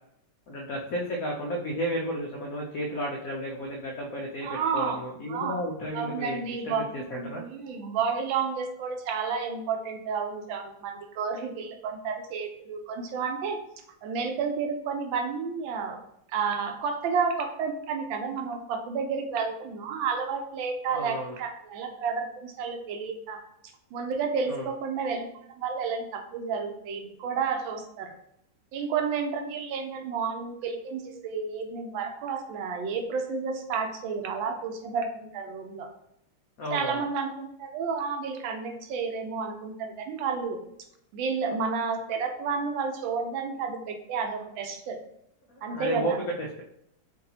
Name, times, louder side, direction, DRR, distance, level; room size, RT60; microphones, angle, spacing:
voice 1, 0.5-7.4 20.9-21.4 24.5-24.7 36.6-37.0 45.5-46.1 46.4-46.6, equal, 85° left, -1 dB, 0.7 m, -33 dB
voice 2, 4.4-5.0 5.3-5.6 5.9-6.9 7.4-13.6 14.0-16.0 16.3-23.4 23.9-28.1 28.7-35.9 36.7-40.6 41.1-45.0 45.6-46.2, right 5 dB, 75° right, 4 dB, 1.3 m, -31 dB
4.8 x 2.6 x 2.7 m, 0.76 s
omnidirectional pair, 2.2 m